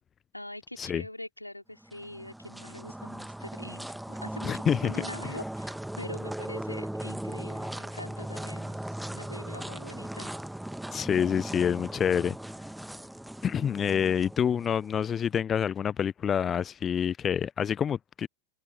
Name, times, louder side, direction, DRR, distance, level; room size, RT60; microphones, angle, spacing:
voice 1, 0.3-8.8 9.1-10.4, left 1 dB, 85° left, 4.4 m, -44 dB
sound 1, 1.8-15.1, right 1 dB, 5° right, 1.4 m, -38 dB
voice 2, 4.4-4.9 10.9-12.3 13.4-18.3, left 8 dB, 25° left, 0.6 m, -27 dB
figure-of-eight pair, 90°, 0 cm